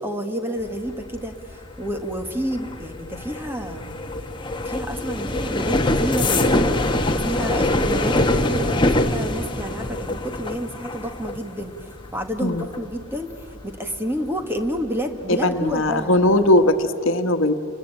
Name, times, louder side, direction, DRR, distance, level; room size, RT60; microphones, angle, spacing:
voice 1, 0.0-3.9 4.6-6.7 7.1-16.1, equal, 10° right, 5 dB, 1.5 m, -30 dB
sound 1, 0.6-15.2 15.6-16.0 16.3-16.6, left 1 dB, 20° left, 1.2 m, -25 dB
voice 2, 15.3-17.5, left 1 dB, 60° left, 7 dB, 1.4 m, -19 dB
30.0 x 21.0 x 9.0 m, 2.9 s
head